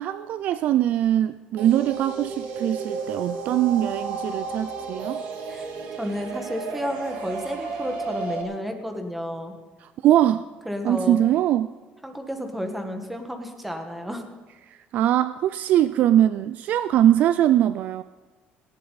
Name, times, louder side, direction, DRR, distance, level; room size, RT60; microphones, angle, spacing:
voice 1, 0.0-5.2 9.8-10.5 10.8-11.7 14.7-18.0, right 12 dB, 50° right, 14 dB, 0.4 m, -22 dB
sound 1, 1.6-8.4, right 4 dB, 90° right, 3.1 m, -33 dB
voice 2, 6.0-9.5 10.6-11.2 12.0-14.2, equal, 5° right, 5 dB, 1.6 m, -31 dB
18.0 x 17.0 x 4.1 m, 1.4 s
cardioid pair, 170°, 3 cm